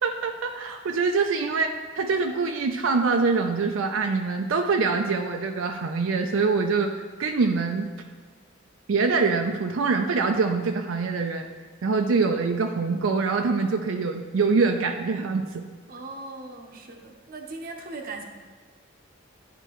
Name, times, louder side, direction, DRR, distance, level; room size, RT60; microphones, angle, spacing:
voice 1, 0.0-7.9 8.9-11.5 11.8-15.6, right 4 dB, 75° right, 4 dB, 0.4 m, -24 dB
voice 2, 15.9-18.2, right 3 dB, 45° right, 3 dB, 0.7 m, -39 dB
11.0 x 4.5 x 3.0 m, 1.5 s
head